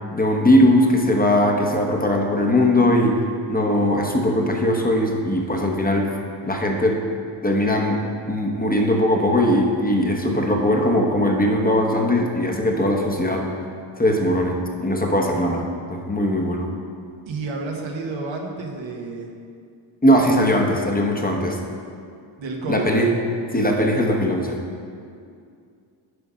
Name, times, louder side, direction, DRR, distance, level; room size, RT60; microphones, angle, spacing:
voice 1, 0.1-3.2 3.5-6.2 6.4-7.0 7.4-8.0 8.3-13.5 14.0-15.6 15.9-16.7 20.0-21.6 22.7-23.1 23.5-24.6, left 1 dB, 20° left, 1 dB, 1.0 m, -20 dB
voice 2, 17.3-19.3 22.4-22.9, right 3 dB, 75° right, 1 dB, 1.3 m, -30 dB
9.7 x 5.0 x 5.0 m, 2.3 s
cardioid pair, 100°, 47 cm